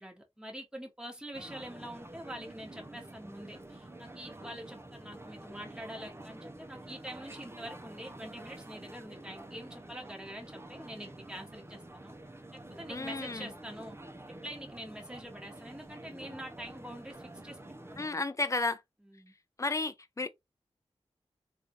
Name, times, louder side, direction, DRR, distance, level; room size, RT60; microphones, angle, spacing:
voice 1, 0.0-12.1 12.5-14.0 14.3-17.6 17.9-18.2 19.0-19.3, equal, 5° right, 1.4 m, -45 dB
sound 1, 1.3-18.1, right 1 dB, 25° right, 0.7 m, -48 dB
voice 2, 12.9-13.5 18.0-18.8 19.6-20.3, left 3 dB, 30° left, 0.6 m, -32 dB
3.5 x 2.5 x 2.9 m
cardioid pair, 45°, 11 cm